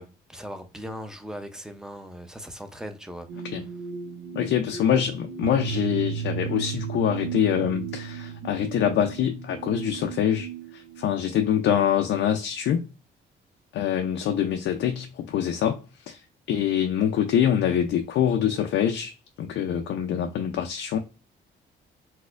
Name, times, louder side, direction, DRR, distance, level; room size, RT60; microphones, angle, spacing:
voice 1, 0.0-3.7, equal, 5° right, 0.6 m, -39 dB
sound 1, 3.3-11.4, right 7 dB, 80° right, 0.6 m, -35 dB
voice 2, 4.4-10.5 11.0-12.9 13.7-16.2 16.5-19.1 19.4-21.0, left 9 dB, 70° left, 0.5 m, -25 dB
4.1 x 2.1 x 2.5 m
cardioid pair, 90°, 20 cm